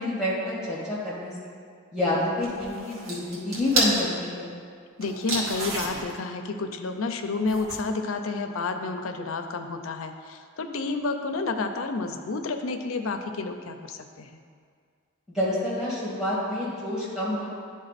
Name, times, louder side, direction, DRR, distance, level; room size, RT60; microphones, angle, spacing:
voice 1, 0.0-1.5 1.9-4.5 15.3-17.5, left 1 dB, 5° right, -7 dB, 1.9 m, -28 dB
sound 1, 2.4-4.0 5.0-6.2 7.4-7.8, right 1 dB, 90° right, 1.7 m, -29 dB
voice 2, 5.0-14.4, left 3 dB, 70° left, 6 dB, 0.5 m, -30 dB
10.5 x 3.6 x 4.1 m, 2.1 s
head